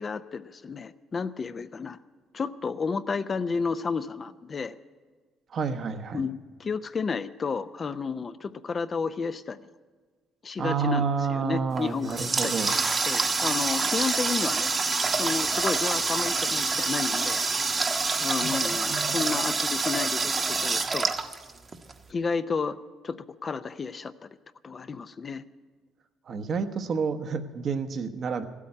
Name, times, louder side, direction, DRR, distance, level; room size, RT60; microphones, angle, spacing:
voice 1, 0.0-2.0 2.3-4.7 6.1-9.6 10.4-14.7 15.1-17.4 17.8-21.1 22.1-22.8 23.0-24.1 24.6-25.4, left 5 dB, 35° left, 12 dB, 0.5 m, -32 dB
voice 2, 5.5-6.2 10.6-12.7 18.4-19.4 26.3-28.4, right 5 dB, 55° right, 8 dB, 1.0 m, -30 dB
Water tap faucet, 11.7-21.9, right 4 dB, 35° right, 1.0 m, -26 dB
14.5 x 8.5 x 9.8 m, 1.4 s
cardioid pair, 85°, 0 cm